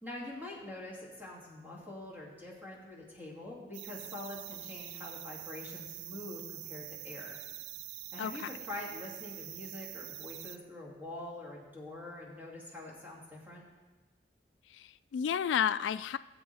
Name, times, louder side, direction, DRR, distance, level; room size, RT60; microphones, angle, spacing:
voice 1, 0.0-7.4 8.1-13.6, left 2 dB, 10° right, -5 dB, 2.6 m, -45 dB
sound 1, 3.7-10.6, right 14 dB, 70° right, 0.4 m, -45 dB
voice 2, 8.2-8.5 14.7-16.2, left 8 dB, 90° left, 15 dB, 0.3 m, -32 dB
18.5 x 7.8 x 3.4 m, 1.2 s
head